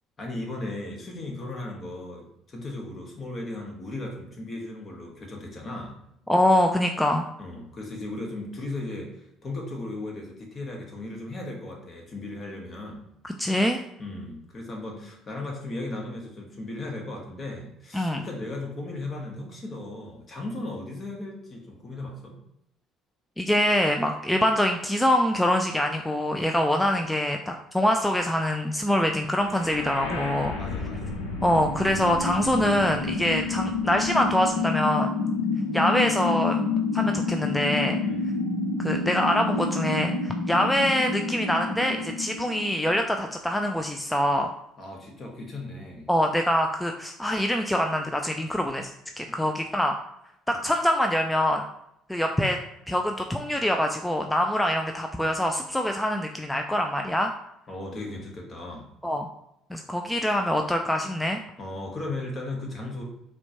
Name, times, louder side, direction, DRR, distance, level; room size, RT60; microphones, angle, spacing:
voice 1, 0.2-6.0 7.4-13.0 14.0-22.3 30.6-31.2 38.0-38.3 44.8-46.1 49.2-49.4 50.5-50.6 57.7-58.9 61.6-63.0, left 2 dB, 40° left, 0 dB, 1.1 m, -36 dB
voice 2, 6.3-7.3 13.4-13.8 17.9-18.2 23.4-30.5 31.4-35.1 35.7-36.6 36.9-38.0 38.8-44.5 46.1-49.9 50.5-51.6 52.1-52.6 52.9-57.3 59.0-59.3 59.7-61.4, left 1 dB, 5° left, 4 dB, 0.3 m, -24 dB
sound 1, 29.3-43.3, left 4 dB, 80° left, 0.6 m, -29 dB
4.2 x 2.2 x 2.9 m, 0.79 s
hypercardioid pair, 60°, 0 cm